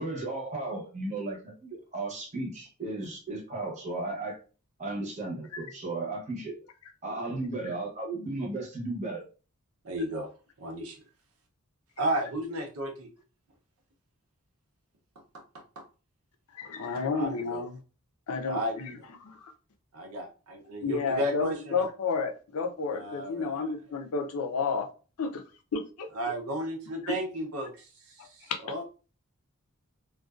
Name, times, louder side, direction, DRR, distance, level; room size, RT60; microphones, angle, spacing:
voice 1, 0.0-4.4 4.8-6.5 7.0-9.2, right 2 dB, 35° right, 0 dB, 0.8 m, -35 dB
voice 2, 9.8-10.3 10.6-11.0 12.0-13.1 15.3-15.4 15.8-15.9 17.1-17.6 18.5-18.7 19.9-21.8 23.0-23.7 26.2-27.9 28.2-28.8, right 1 dB, 75° right, 2 dB, 0.7 m, -33 dB
voice 3, 16.5-17.8 18.3-19.5 20.8-24.9 25.2-25.4 25.7-26.1 27.0-27.2 28.2-28.6, left 4 dB, 75° left, 5 dB, 0.5 m, -31 dB
2.4 x 2.3 x 2.3 m, 0.35 s
head